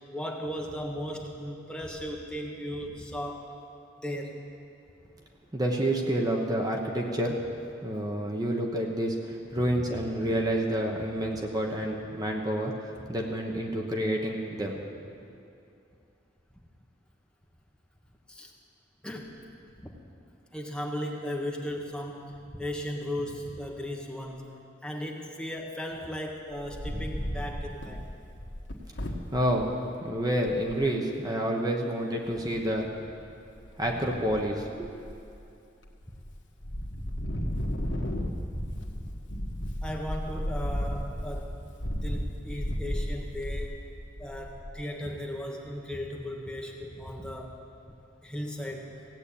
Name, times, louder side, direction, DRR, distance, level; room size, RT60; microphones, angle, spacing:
voice 1, 0.1-3.5 4.0-4.4 9.7-9.8 10.2-10.4 11.2-11.3 18.3-18.5 19.0-19.3 19.8-19.9 20.5-28.1 34.0-34.1 39.8-41.7 42.0-43.8 44.2-47.6 48.2-48.9, equal, 5° left, 0 dB, 1.2 m, -36 dB
voice 2, 5.5-7.5 7.8-14.8 29.3-29.7 30.0-32.9 33.8-34.9, right 1 dB, 20° right, 1 dB, 1.1 m, -29 dB
Wind, 26.5-29.6 30.2-30.3 30.5-30.8 32.3-32.9 33.4-33.9 34.2-35.4 35.9-36.3 36.6-44.8, equal, 70° left, 1.5 m, -34 dB
16.5 x 8.5 x 8.5 m, 2.6 s
head